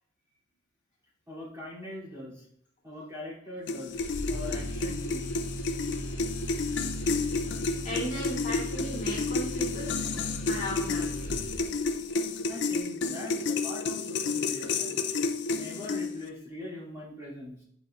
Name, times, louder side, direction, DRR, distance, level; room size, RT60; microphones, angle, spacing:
voice 1, 1.3-2.5 2.8-4.0 4.3-5.3 12.5-15.2 15.5-17.6, left 1 dB, 15° right, -9 dB, 2.9 m, -42 dB
sound 1, 3.7-16.3, left 4 dB, 55° left, 0.5 m, -31 dB
sound 2, 3.9-11.9, right 1 dB, 75° left, 1.5 m, -38 dB
voice 2, 7.8-10.0 10.5-11.1, equal, 35° left, -6 dB, 2.1 m, -36 dB
9.3 x 5.1 x 2.5 m, 0.66 s
head